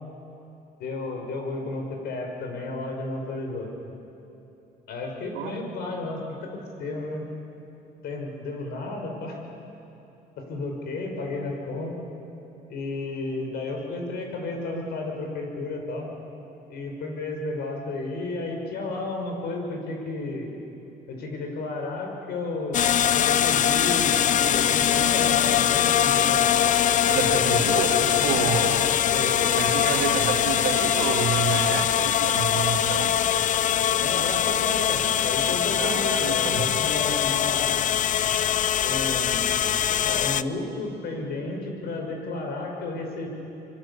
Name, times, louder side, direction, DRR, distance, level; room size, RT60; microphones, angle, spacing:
voice 1, 0.8-3.7 4.9-7.2 8.0-9.4 10.4-12.0 12.7-16.1 16.7-20.5 21.1-22.8 23.1-26.5 27.1-29.6 34.0-37.8 38.8-39.6 39.9-43.3, left 2 dB, 70° left, 2 dB, 5.9 m, -32 dB
sound 1, 22.7-40.4, left 10 dB, 50° left, 0.7 m, -22 dB
voice 2, 27.1-28.8 29.5-33.1 35.8-36.7, right 8 dB, 90° right, 4 dB, 2.5 m, -29 dB
25.5 x 25.0 x 8.6 m, 3.0 s
cardioid pair, 110°, 17 cm